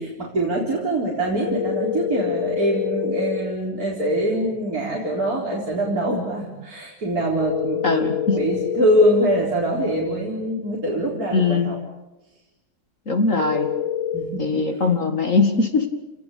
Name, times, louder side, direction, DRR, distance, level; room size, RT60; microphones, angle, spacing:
voice 1, 0.0-11.8 14.1-14.5, right 1 dB, 50° right, -3 dB, 4.7 m, -24 dB
sound 1, 1.5-3.4 7.4-9.4 13.4-14.2, left 9 dB, 70° left, 3.4 m, -26 dB
voice 2, 7.8-8.4 11.3-11.7 13.1-13.7 14.4-15.9, left 4 dB, 45° left, 6 dB, 2.4 m, -21 dB
29.5 x 19.5 x 8.5 m, 1.0 s
omnidirectional pair, 2.0 m